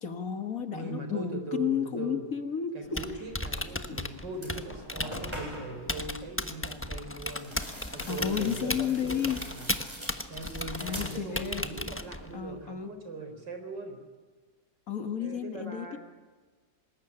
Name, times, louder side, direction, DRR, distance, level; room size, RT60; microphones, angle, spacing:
voice 1, 0.0-2.8 3.9-4.0 8.1-9.4 10.8-11.7 12.3-13.0 14.9-16.0, left 8 dB, 50° left, 7 dB, 2.0 m, -32 dB
voice 2, 0.7-2.3 2.7-7.6 7.9-9.7 10.2-14.0 15.2-16.0, right 2 dB, 80° right, 6 dB, 4.8 m, -40 dB
Typing, 2.8-12.4, left 1 dB, 10° left, 0.9 m, -36 dB
sound 1, 3.9-4.0 4.3-5.8 7.2-11.8 12.0-12.6, equal, 15° right, 7.7 m, -44 dB
26.0 x 20.5 x 10.0 m, 1.4 s
omnidirectional pair, 1.9 m